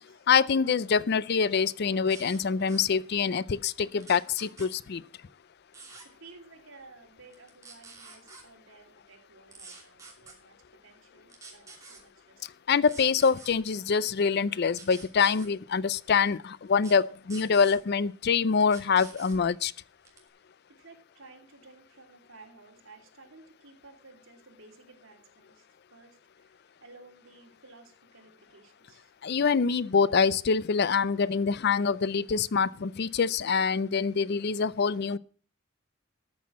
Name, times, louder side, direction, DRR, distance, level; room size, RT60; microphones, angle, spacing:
voice 1, 0.3-5.0 12.7-19.7 29.2-35.2, left 5 dB, 50° left, 0.4 m, -25 dB
sound 1, 2.1-2.4 2.7-2.9 4.0-4.7 5.7-6.1 7.3-8.4 9.5-10.3 11.3-12.0 12.8-13.5 14.7-15.5 16.8-17.0 17.3-17.8 18.6-19.4 20.1-20.3, right 4 dB, 15° right, 2.8 m, -48 dB
voice 2, 6.1-10.6 10.8-12.5 20.8-29.1, right 3 dB, 80° right, 3.0 m, -54 dB
13.0 x 6.4 x 7.2 m
head